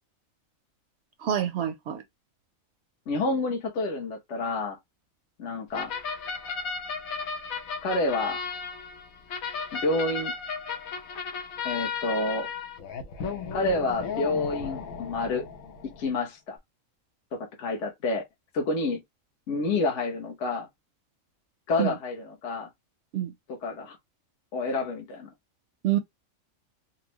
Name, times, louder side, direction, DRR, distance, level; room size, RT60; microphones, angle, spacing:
voice 1, 1.2-2.0 21.8-22.0 23.1-23.3 25.8-26.0, right 11 dB, 65° right, 0.7 m, -27 dB
voice 2, 3.1-4.8 5.4-5.9 7.8-8.4 9.7-10.3 11.6-12.5 13.5-15.5 15.8-16.6 17.3-18.2 18.5-19.0 19.5-20.7 21.7-22.7 23.5-24.0 24.5-25.3, left 2 dB, 60° left, 1.1 m, -29 dB
sound 1, 5.7-16.1, left 5 dB, 85° left, 1.3 m, -35 dB
4.0 x 2.1 x 2.9 m
omnidirectional pair, 1.4 m